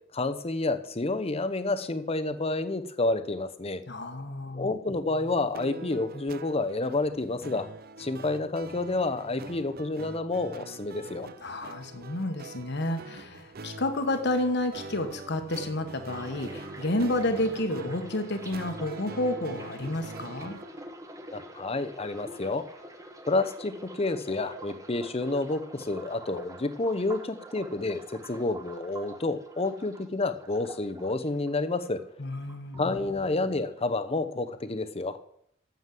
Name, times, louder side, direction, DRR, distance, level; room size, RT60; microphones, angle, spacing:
voice 1, 0.1-3.8 4.5-7.7 8.0-11.3 21.3-22.6 23.3-32.0 32.8-35.2, left 2 dB, 30° left, 10 dB, 0.8 m, -29 dB
voice 2, 3.9-4.7 11.4-20.6 32.2-33.0, left 1 dB, 60° left, 7 dB, 1.3 m, -30 dB
sound 1, 5.5-20.8, right 3 dB, 50° right, 0.6 m, -44 dB
sound 2, 16.1-32.0 32.3-33.2 33.5-33.9, right 1 dB, 15° right, 1.3 m, -46 dB
9.4 x 7.3 x 7.6 m, 0.70 s
head